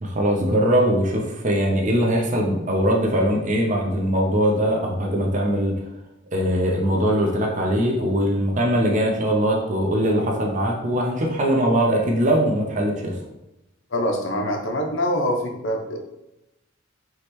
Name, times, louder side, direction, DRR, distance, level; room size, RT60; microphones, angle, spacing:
voice 1, 0.0-5.8 6.3-13.2, equal, 40° right, 0 dB, 0.7 m, -21 dB
voice 2, 13.9-16.0, equal, 70° left, 3 dB, 0.7 m, -24 dB
4.8 x 3.1 x 3.1 m, 0.93 s
head